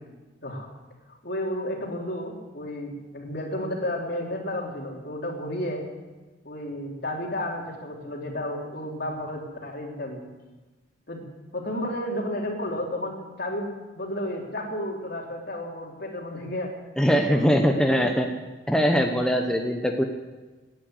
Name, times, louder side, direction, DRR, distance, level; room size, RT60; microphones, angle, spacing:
voice 1, 1.1-5.8 6.4-10.2 11.1-11.2 11.5-16.7 17.0-18.2, left 1 dB, 60° left, 0 dB, 3.3 m, -32 dB
voice 2, 17.0-18.3 18.7-20.0, equal, 5° left, 3 dB, 0.9 m, -22 dB
17.5 x 10.0 x 8.0 m, 1.2 s
head